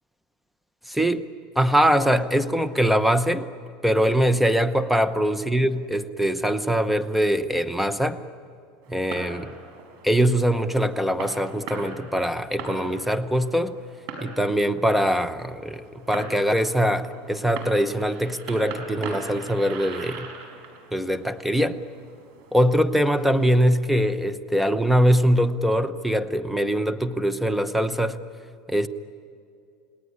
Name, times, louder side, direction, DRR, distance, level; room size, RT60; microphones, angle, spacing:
voice 1, 0.9-1.3 1.6-3.5 3.8-8.2 8.9-9.5 10.0-13.7 14.2-20.3 20.9-21.8 22.5-28.2 28.7-28.9, equal, 5° right, 12 dB, 0.9 m, -22 dB
Fireworks, 8.8-23.7, right 4 dB, 70° right, 4.9 m, -41 dB
29.0 x 18.5 x 9.8 m, 2.5 s
supercardioid pair, 135°, 3 cm